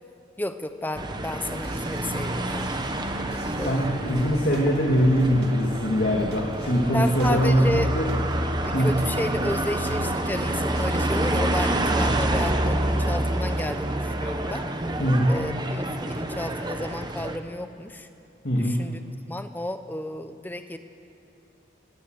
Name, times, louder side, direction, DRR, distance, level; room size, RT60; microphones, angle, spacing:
voice 1, 0.4-2.7 3.6-3.9 6.9-7.9 8.6-14.6 15.3-18.1 18.6-20.8, left 1 dB, 10° left, 9 dB, 0.9 m, -32 dB
sound 1, 0.9-17.4, right 1 dB, 25° right, 1.2 m, -28 dB
sound 2, 1.6-12.3, right 1 dB, 55° right, 1.8 m, -42 dB
voice 2, 3.6-8.1 8.7-9.0 15.0-15.4 18.4-18.9, equal, 55° left, -1 dB, 2.3 m, -22 dB
23.5 x 17.0 x 8.1 m, 2.8 s
head